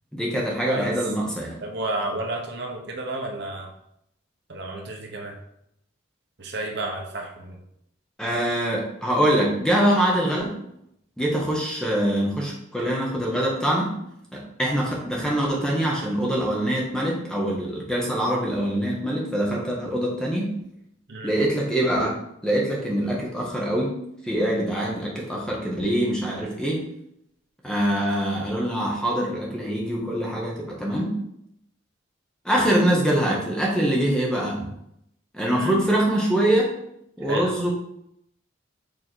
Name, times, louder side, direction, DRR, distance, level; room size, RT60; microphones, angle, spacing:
voice 1, 0.1-1.6 8.2-10.6 11.2-13.9 14.3-20.5 21.2-22.1 22.4-24.0 24.2-26.8 27.6-31.1 32.4-34.7 35.3-36.7 37.2-37.7, right 1 dB, 5° left, -3 dB, 1.3 m, -24 dB
voice 2, 1.6-3.7 4.5-5.4 6.4-7.6 21.1-21.3 35.5-35.7 37.2-37.6, right 2 dB, 55° right, 1 dB, 0.9 m, -31 dB
6.7 x 3.6 x 4.5 m, 0.77 s
head